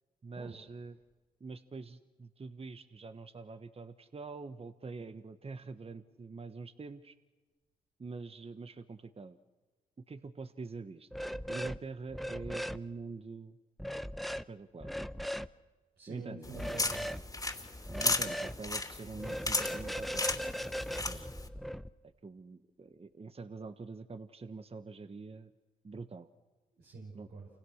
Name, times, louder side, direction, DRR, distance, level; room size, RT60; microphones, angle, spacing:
voice 1, 0.2-1.0 1.4-7.1 8.0-9.4 10.1-11.1 11.5-13.6 14.5-14.9 16.1-16.4 17.9-20.3 20.9-21.3 22.2-25.5 25.8-26.3 27.1-27.3, right 4 dB, 35° right, 10 dB, 1.3 m, -45 dB
sound 1, 11.1-11.8 12.1-12.8 13.8-14.4 14.8-15.5 16.5-17.2 17.9-18.6 19.2-21.9, equal, ahead, 0.9 m, -38 dB
voice 2, 16.0-17.1 26.7-27.5, right 3 dB, 70° right, -3 dB, 6.3 m, -47 dB
sound 2, 16.4-21.5, left 2 dB, 20° left, 3.1 m, -35 dB
28.5 x 27.0 x 6.5 m, 1.3 s
supercardioid pair, 50°, 18 cm